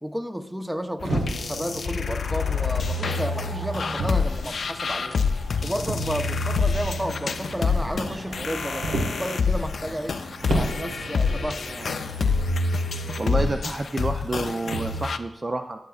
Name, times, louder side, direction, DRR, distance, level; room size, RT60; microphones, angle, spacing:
voice 1, 0.0-5.2 5.6-10.2 10.5-12.0, equal, 10° right, 9 dB, 0.7 m, -32 dB
sound 1, 1.0-15.2, left 5 dB, 65° left, 0.4 m, -28 dB
Motor vehicle (road), 1.0-4.5 5.8-9.3 10.4-13.7 14.6-15.0, right 1 dB, 80° right, 1.5 m, -31 dB
sound 2, 1.9-12.3, right 1 dB, 65° right, 1.3 m, -45 dB
voice 2, 13.2-15.8, right 2 dB, 35° right, 6 dB, 0.4 m, -28 dB
15.5 x 6.5 x 2.4 m, 0.93 s
cardioid pair, 45°, 0 cm